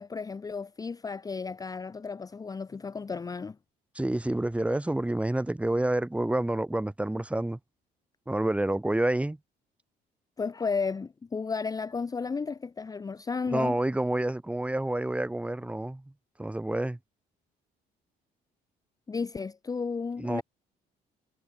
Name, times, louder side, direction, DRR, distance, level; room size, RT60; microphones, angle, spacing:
voice 1, 0.0-3.6 10.4-13.8 19.1-20.4, left 5 dB, 20° left, 0.8 m, -33 dB
voice 2, 4.0-7.6 8.3-9.4 13.5-16.0 16.4-17.0 20.2-20.4, right 1 dB, 5° right, 2.3 m, -28 dB
cardioid pair, 110°, 17 cm